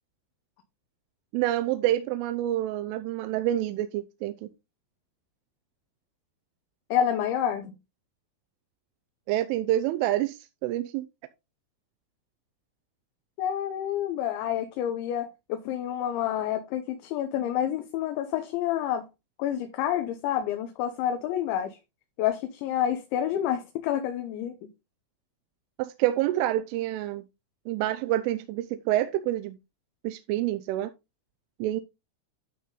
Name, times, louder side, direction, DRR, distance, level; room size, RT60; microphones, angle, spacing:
voice 1, 1.3-4.5 9.3-11.1 25.8-27.2 27.7-29.6 30.0-30.9 31.6-31.8, right 14 dB, 85° right, 3.1 m, -27 dB
voice 2, 6.9-7.7 13.4-19.0 19.4-21.8 22.2-24.6, left 10 dB, 75° left, 3.0 m, -28 dB
12.0 x 4.3 x 3.7 m
omnidirectional pair, 5.7 m